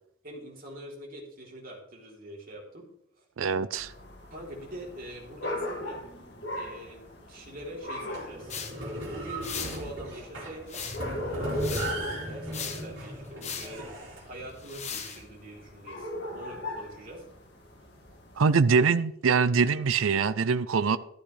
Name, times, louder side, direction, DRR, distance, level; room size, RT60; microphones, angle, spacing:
voice 1, 0.2-2.8 3.2-3.3 4.3-6.0 6.5-8.5 9.1-10.8 11.3-13.9 14.2-17.2, right 1 dB, 45° right, 3.4 m, -44 dB
voice 2, 3.4-3.9 18.4-21.0, right 5 dB, 85° right, 0.5 m, -23 dB
sound 1, 3.8-18.5, left 1 dB, 55° left, 2.0 m, -40 dB
sound 2, 8.0-14.2, right 1 dB, 65° right, 4.0 m, -37 dB
sound 3, 8.5-8.7 9.4-9.8 10.7-11.1 11.6-12.0 12.5-12.9 13.4-13.7 14.6-15.2, left 6 dB, 35° left, 1.2 m, -37 dB
13.0 x 12.0 x 3.3 m
head